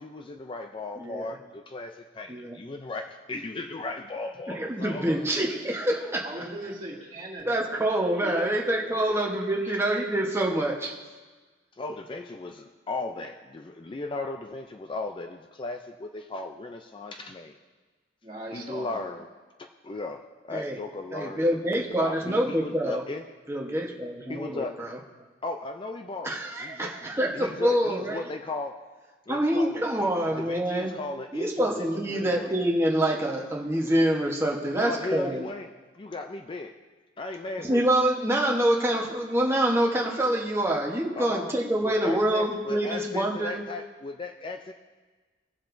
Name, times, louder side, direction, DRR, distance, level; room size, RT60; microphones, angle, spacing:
voice 1, 0.0-5.3 11.8-17.6 18.5-19.3 19.6-21.5 21.7-23.2 24.3-24.8 25.4-28.7 29.3-32.6 34.7-35.7 35.9-36.7 37.2-37.8 41.2-41.5 41.8-44.7, left 3 dB, 25° left, 5 dB, 0.4 m, -36 dB
voice 2, 1.0-1.4 2.3-2.6 4.5-6.4 7.4-11.0 20.5-20.8 21.1-23.0 23.5-25.0 26.2-28.3 29.3-31.0 31.3-35.5 37.6-43.6, right 1 dB, 15° right, -1 dB, 1.1 m, -26 dB
voice 3, 6.2-7.8 8.2-8.5 8.9-9.1 18.2-19.0, right 1 dB, 30° right, -5 dB, 2.3 m, -39 dB
18.5 x 7.3 x 2.6 m, 1.3 s
head